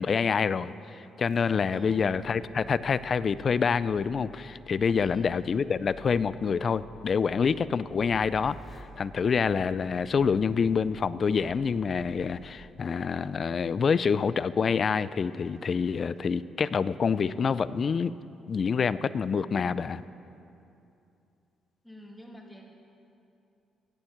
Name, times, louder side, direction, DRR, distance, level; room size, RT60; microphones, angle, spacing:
voice 1, 0.0-18.1 18.5-20.0, left 6 dB, 45° left, 17 dB, 0.4 m, -27 dB
voice 2, 1.7-2.4 5.0-5.4 21.8-22.6, equal, 10° left, 0 dB, 2.3 m, -48 dB
sound 1, 5.6-11.6, right 1 dB, 15° right, 1.9 m, -55 dB
sound 2, 12.5-12.7, left 2 dB, 85° right, 2.4 m, -52 dB
16.0 x 7.3 x 7.8 m, 2.7 s
cardioid pair, 90°, 0 cm